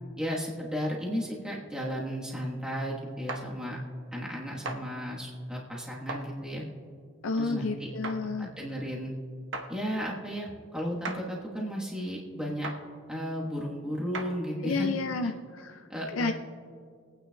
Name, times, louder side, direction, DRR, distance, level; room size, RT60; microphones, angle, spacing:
voice 1, 0.2-3.8 4.1-6.6 7.3-7.9 8.4-9.1 9.7-12.7 13.1-14.9 15.2-15.3 15.9-16.3, equal, 5° right, -4 dB, 1.2 m, -34 dB
sound 1, 3.3-3.4 4.6-4.8 6.1-6.2 8.0-8.2 9.5-9.7 11.0-11.2 12.6-12.8 14.1-14.3, right 2 dB, 65° right, 1.0 m, -35 dB
voice 2, 7.2-8.5 14.6-15.8 16.1-16.3, left 3 dB, 85° left, 5 dB, 0.5 m, -30 dB
23.5 x 9.1 x 2.2 m, 2.2 s
head